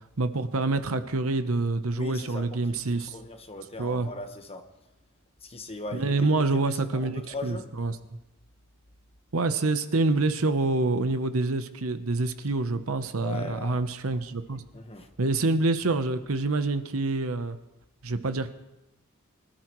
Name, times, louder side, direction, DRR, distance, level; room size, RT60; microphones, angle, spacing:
voice 1, 0.2-3.1 3.8-4.1 5.9-8.0 9.3-14.6 15.2-17.6 18.0-18.5, right 3 dB, 70° right, 10 dB, 0.9 m, -26 dB
voice 2, 1.9-4.6 5.4-7.7 13.2-13.8 14.7-15.1, left 2 dB, 30° left, 5 dB, 1.3 m, -40 dB
24.5 x 13.0 x 3.1 m, 0.94 s
head